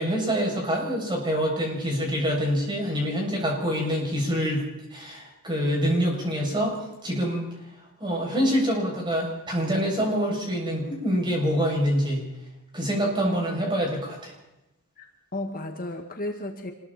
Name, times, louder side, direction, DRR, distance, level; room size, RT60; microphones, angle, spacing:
voice 1, 0.0-4.6 4.9-6.8 7.0-7.5 8.0-12.2 12.7-14.3, equal, 20° right, -1 dB, 7.5 m, -26 dB
voice 2, 13.2-13.6 15.0-16.7, left 1 dB, 40° left, 3 dB, 2.0 m, -34 dB
26.5 x 22.0 x 4.4 m, 0.96 s
head